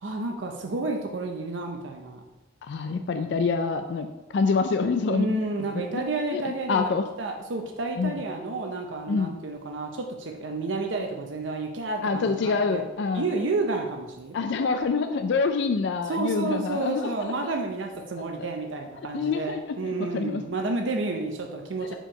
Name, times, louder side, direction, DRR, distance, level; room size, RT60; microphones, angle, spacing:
voice 1, 0.0-2.2 5.1-12.8 13.1-14.4 16.0-22.0, right 3 dB, 85° right, 2 dB, 0.6 m, -30 dB
voice 2, 2.6-4.1 4.3-6.0 6.3-7.0 8.0-8.1 9.1-9.3 12.0-13.3 14.3-17.5 18.4-18.5 19.1-20.4 21.8-22.0, left 4 dB, 70° left, 7 dB, 0.4 m, -26 dB
4.5 x 4.4 x 5.2 m, 1.1 s
head